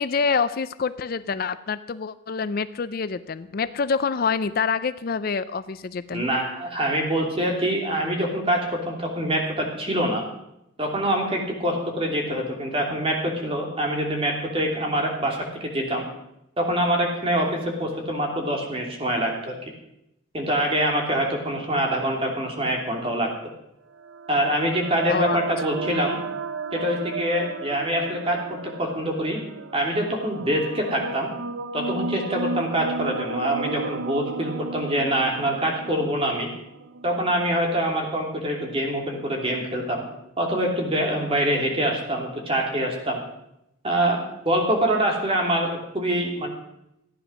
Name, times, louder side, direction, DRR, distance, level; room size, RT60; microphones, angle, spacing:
voice 1, 0.0-6.2 25.1-25.4 25.7-25.8, left 5 dB, 50° left, 14 dB, 0.4 m, -26 dB
voice 2, 6.1-10.2 10.8-16.0 16.6-19.6 20.3-23.3 24.3-26.2 26.7-28.4 28.8-29.4 29.7-31.3 31.7-36.5 37.0-40.0 40.4-43.2 43.8-46.5, right 1 dB, 30° right, 1 dB, 3.0 m, -25 dB
sound 1, 23.9-37.6, right 3 dB, 75° right, 0.7 m, -34 dB
15.0 x 9.9 x 6.2 m, 0.83 s
head